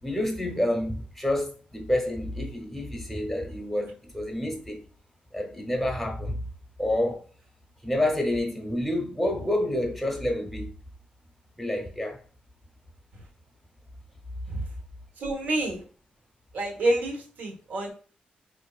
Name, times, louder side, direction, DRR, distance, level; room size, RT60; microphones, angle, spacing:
voice 1, 0.0-4.8 5.3-6.4 6.8-7.2 7.8-10.7 11.6-12.2, left 1 dB, ahead, 0.8 m, -28 dB
voice 2, 15.2-15.8 16.5-17.9, right 1 dB, 75° right, 1.1 m, -28 dB
4.5 x 2.6 x 2.3 m
cardioid pair, 125°, 3 cm